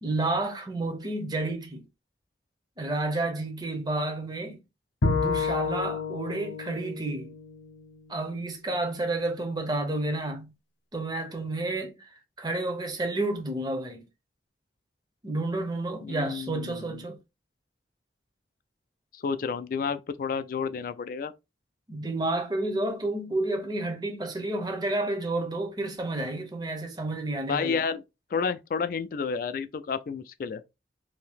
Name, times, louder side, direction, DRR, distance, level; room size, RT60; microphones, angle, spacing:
voice 1, 0.0-1.8 2.8-4.6 5.0-7.3 8.1-10.5 10.9-14.0 15.2-17.2 21.9-27.8, right 2 dB, 25° right, 0.6 m, -30 dB
Bowed string instrument, 5.0-8.3, left 4 dB, 90° left, 0.7 m, -30 dB
voice 2, 16.0-17.0 19.1-21.3 27.4-28.0 28.3-30.6, left 5 dB, 50° left, 0.3 m, -31 dB
2.7 x 2.7 x 3.4 m
head